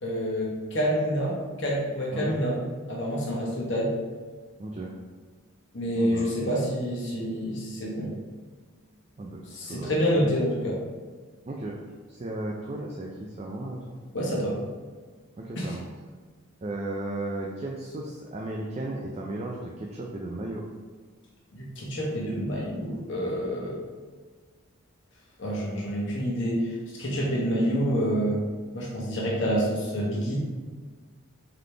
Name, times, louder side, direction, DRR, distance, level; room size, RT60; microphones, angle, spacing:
voice 1, 0.0-2.6 2.9-3.9 5.7-8.1 9.5-10.8 14.1-14.6 15.6-15.7 21.5-23.7 25.4-28.4 28.7-30.5, equal, 55° left, -3 dB, 1.0 m, -27 dB
voice 2, 4.6-4.9 6.0-6.3 9.2-10.3 11.4-11.8 12.1-14.0 15.4-15.9 16.6-20.6, right 2 dB, 30° right, -2 dB, 0.3 m, -35 dB
3.9 x 3.4 x 3.3 m, 1.5 s
head